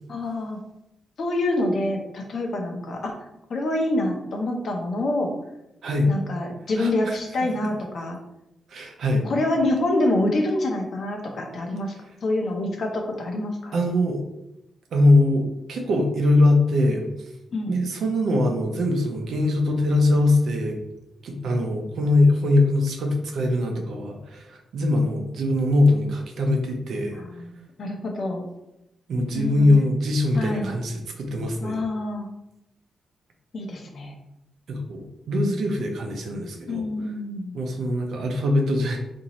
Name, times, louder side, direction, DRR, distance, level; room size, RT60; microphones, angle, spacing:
voice 1, 0.1-0.6 1.2-3.1 3.5-5.3 6.1-8.2 9.2-11.9 12.2-13.7 17.5-17.7 27.1-28.5 29.3-29.7 30.3-30.7 31.6-32.3 33.5-34.1 36.7-37.6, left 1 dB, 55° left, 2 dB, 0.7 m, -26 dB
voice 2, 6.8-7.2 7.6-7.7 8.7-9.3 13.7-14.2 14.9-17.1 17.7-20.8 21.2-27.2 29.1-31.8 34.7-36.9 37.5-39.0, left 2 dB, 70° right, 3 dB, 0.6 m, -22 dB
3.9 x 2.6 x 3.0 m, 0.87 s
wide cardioid pair, 140°, 0 cm